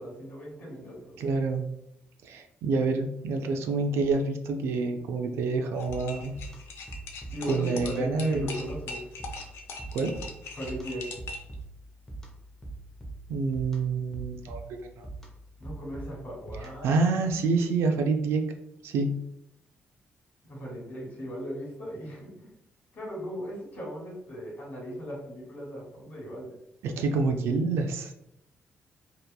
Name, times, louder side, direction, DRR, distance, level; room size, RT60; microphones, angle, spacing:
voice 1, 0.0-1.2 7.3-9.1 10.5-11.1 15.6-16.9 20.4-22.5 22.9-26.5, equal, 55° left, -3 dB, 1.3 m, -37 dB
voice 2, 1.2-1.6 2.2-6.4 7.5-8.5 9.9-10.1 13.3-14.6 15.0-15.1 16.8-18.4 18.8-19.1 26.8-28.1, right 4 dB, 90° right, 5 dB, 0.3 m, -27 dB
sound 1, 5.7-11.5, left 3 dB, 80° left, 0.4 m, -41 dB
sound 2, 5.9-17.0, right 2 dB, 10° left, 0.6 m, -44 dB
2.8 x 2.2 x 2.2 m, 0.79 s
cardioid pair, 125°, 4 cm